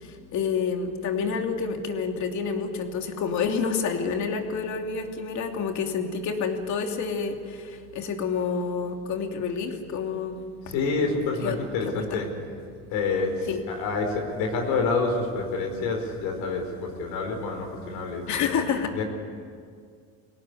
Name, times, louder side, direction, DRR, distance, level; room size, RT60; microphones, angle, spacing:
voice 1, 0.0-10.4 11.4-11.6 11.8-12.2 13.5-13.6 18.3-19.0, left 5 dB, 55° left, 4 dB, 3.0 m, -28 dB
voice 2, 10.6-12.3 12.9-18.6 18.9-19.0, left 4 dB, 75° left, 2 dB, 4.7 m, -28 dB
23.5 x 18.0 x 9.7 m, 2.1 s
cardioid pair, 110°, 34 cm